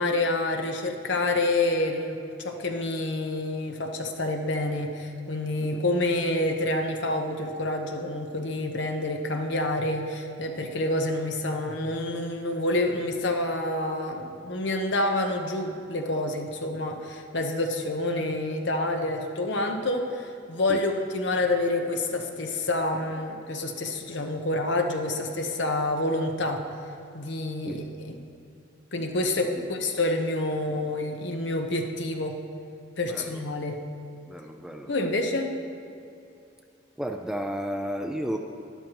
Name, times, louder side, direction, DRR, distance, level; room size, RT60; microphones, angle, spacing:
voice 1, 0.0-26.6 27.1-28.2 28.9-32.4 33.0-33.8 34.9-35.5, left 2 dB, 60° left, 4 dB, 0.9 m, -28 dB
voice 2, 33.0-33.4 34.3-34.9 37.0-38.4, equal, 5° right, 4 dB, 0.4 m, -33 dB
12.5 x 11.0 x 3.0 m, 2.6 s
head